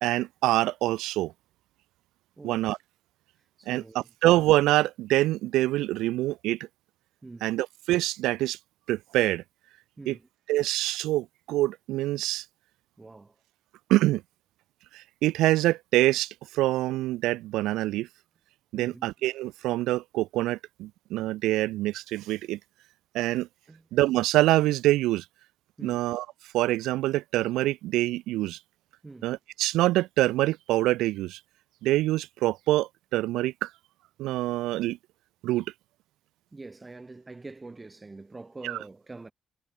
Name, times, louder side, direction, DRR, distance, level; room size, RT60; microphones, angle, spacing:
voice 1, 0.0-1.3 2.4-2.8 3.7-6.7 7.4-8.6 8.9-9.4 10.1-10.2 10.5-12.5 13.9-14.2 14.9-18.1 18.7-22.6 23.1-23.5 23.9-25.3 25.8-26.3 26.5-28.6 29.2-31.4 31.8-33.7 34.2-35.0 35.4-35.7 38.6-38.8, right 16 dB, 80° right, 0.4 m, -25 dB
voice 2, 2.4-2.7 3.6-4.1 7.2-7.6 10.0-10.3 13.0-13.4 18.7-19.1 23.7-23.8 25.8-26.0 29.0-29.3 36.5-39.3, right 3 dB, 30° right, 2.5 m, -45 dB
hypercardioid pair, 40°, 0 cm